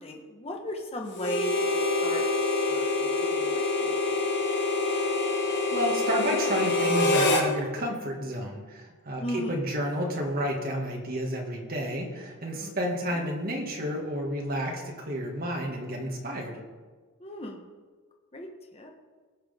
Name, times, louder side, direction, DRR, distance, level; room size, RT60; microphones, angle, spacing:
voice 1, 0.0-2.2 2.7-4.0 9.2-9.6 12.6-12.7 17.2-17.6 18.3-18.9, left 1 dB, 25° left, 1 dB, 1.1 m, -37 dB
Harmonica, 1.1-7.5, left 2 dB, 55° left, 1.5 m, -26 dB
voice 2, 5.7-16.6, equal, 45° right, 0 dB, 1.9 m, -30 dB
17.5 x 6.2 x 3.6 m, 1.4 s
head